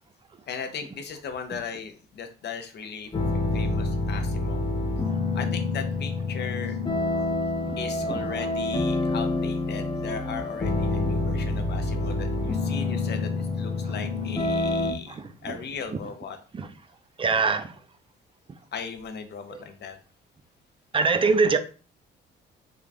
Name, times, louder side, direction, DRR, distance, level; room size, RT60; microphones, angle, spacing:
voice 1, 0.5-4.6 5.3-6.8 7.8-16.4 18.7-20.0, left 6 dB, 60° left, 0.7 m, -37 dB
sound 1, 3.1-14.9, left 2 dB, 25° left, 0.7 m, -27 dB
voice 2, 15.1-15.6 16.5-16.7 17.2-17.7 20.9-21.6, right 4 dB, 25° right, 0.5 m, -23 dB
3.7 x 2.5 x 3.4 m
cardioid pair, 90°, 20 cm